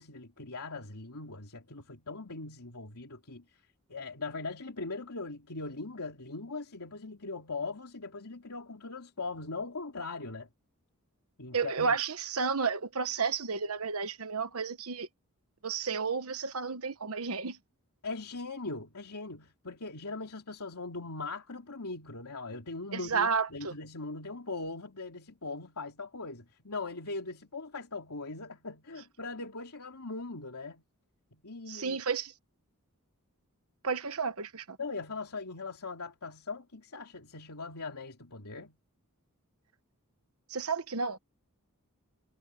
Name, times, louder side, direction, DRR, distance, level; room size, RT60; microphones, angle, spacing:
voice 1, 0.0-3.4 3.9-10.5 11.4-12.0 18.0-30.8 31.3-32.0 34.8-38.8, left 3 dB, 85° left, 3.1 m, -40 dB
voice 2, 11.5-15.1 15.6-17.6 22.9-23.7 31.7-32.3 33.8-34.8 40.5-41.2, right 5 dB, 70° right, 1.2 m, -32 dB
head